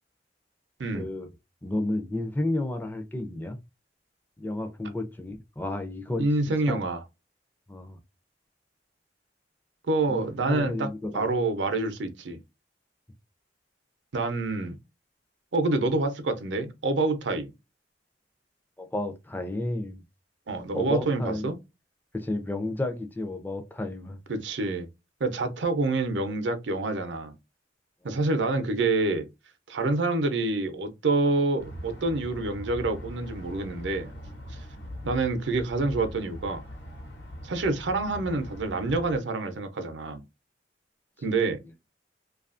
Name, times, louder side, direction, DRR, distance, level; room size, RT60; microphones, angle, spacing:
voice 1, 0.9-1.3 1.6-3.6 4.4-6.3 6.6-6.8 7.7-8.0 10.1-11.3 18.8-20.0 20.7-21.5 22.1-24.2 34.7-34.9, left 2 dB, 10° left, 0.4 m, -32 dB
voice 2, 6.2-7.0 9.9-10.9 11.1-12.4 14.1-14.7 15.5-17.5 20.5-21.5 24.3-24.9 25.2-27.3 28.0-29.3 29.7-34.1 35.0-36.6 37.4-40.2 41.2-41.6, right 3 dB, 80° right, 0.6 m, -27 dB
sound 1, 31.6-39.2, equal, 70° left, 1.0 m, -41 dB
2.7 x 2.4 x 2.4 m
head